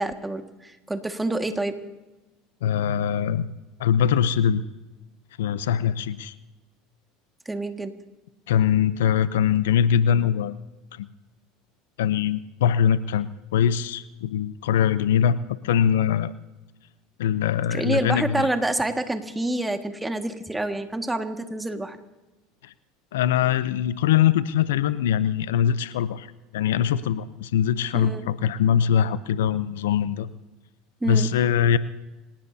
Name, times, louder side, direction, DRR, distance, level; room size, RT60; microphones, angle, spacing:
voice 1, 0.0-1.8 7.5-8.0 17.7-22.0 27.9-28.3 31.0-31.3, right 2 dB, 10° right, 6 dB, 1.8 m, -27 dB
voice 2, 2.6-3.5 3.8-4.6 5.4-6.3 8.5-10.6 10.9-11.1 12.0-16.3 17.2-18.5 22.6-22.7 23.1-30.3 31.1-31.8, left 9 dB, 80° left, 15 dB, 0.6 m, -22 dB
27.0 x 17.5 x 2.8 m, 1.1 s
hypercardioid pair, 85°, 0 cm